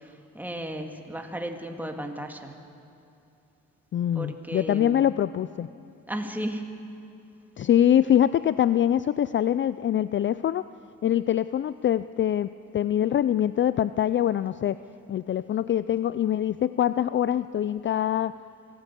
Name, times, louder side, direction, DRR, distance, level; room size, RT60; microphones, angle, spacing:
voice 1, 0.3-2.6 4.2-5.1 6.1-6.6, equal, 5° right, 4 dB, 2.1 m, -34 dB
voice 2, 3.9-5.7 7.6-10.6 11.0-14.8 15.1-18.3, left 10 dB, 40° left, 15 dB, 0.4 m, -24 dB
25.0 x 15.5 x 8.3 m, 2.6 s
cardioid pair, 90°, 30 cm